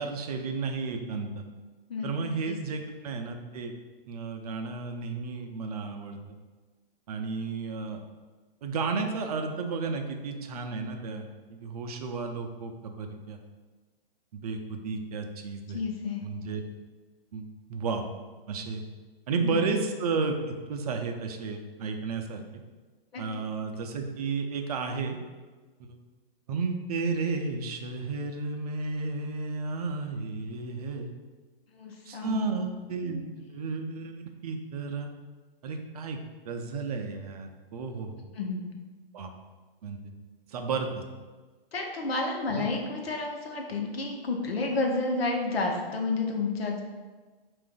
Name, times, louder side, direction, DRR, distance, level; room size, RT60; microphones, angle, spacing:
voice 1, 0.0-1.4 2.0-3.7 4.1-6.2 7.1-8.0 8.6-13.4 14.3-15.8 16.2-16.6 17.3-18.0 18.5-18.8 19.3-20.3 20.7-22.4 23.2-25.2 26.5-31.1 32.0-35.1 35.6-36.2 36.5-38.2 39.1-39.3 39.8-40.0 40.5-41.0 42.5-42.7, right 4 dB, 40° right, 5 dB, 0.4 m, -33 dB
voice 2, 15.7-16.2 19.4-19.7 23.1-23.2 31.7-32.4 33.0-33.3 38.3-38.6 41.7-46.8, left 3 dB, 90° left, 2 dB, 1.0 m, -30 dB
4.5 x 2.5 x 3.8 m, 1.3 s
hypercardioid pair, 150°, 29 cm